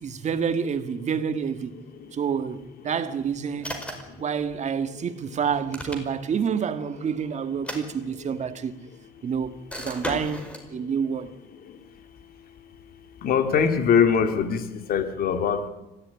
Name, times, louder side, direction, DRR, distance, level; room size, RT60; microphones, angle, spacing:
voice 1, 0.0-1.7 2.1-3.8 4.2-8.7 9.2-11.3, right 7 dB, 45° right, 2.0 m, -28 dB
sound 1, 3.6-4.2 5.5-6.4 7.5-8.5 9.7-10.7, equal, 5° left, 5.0 m, -36 dB
voice 2, 13.2-15.7, left 7 dB, 60° left, 2.7 m, -22 dB
24.0 x 16.0 x 9.9 m
cardioid pair, 110°, 17 cm